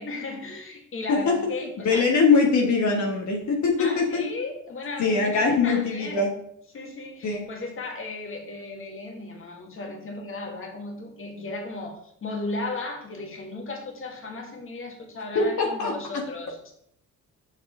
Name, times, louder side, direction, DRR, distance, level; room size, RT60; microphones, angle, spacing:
voice 1, 0.0-2.0 3.8-6.3 6.7-16.7, left 3 dB, 45° left, 2 dB, 1.8 m, -35 dB
voice 2, 1.8-4.2 5.0-6.3 7.2-7.4 15.3-15.9, left 4 dB, 70° left, 0 dB, 1.5 m, -22 dB
7.2 x 5.7 x 3.7 m, 0.71 s
cardioid pair, 90°, 30 cm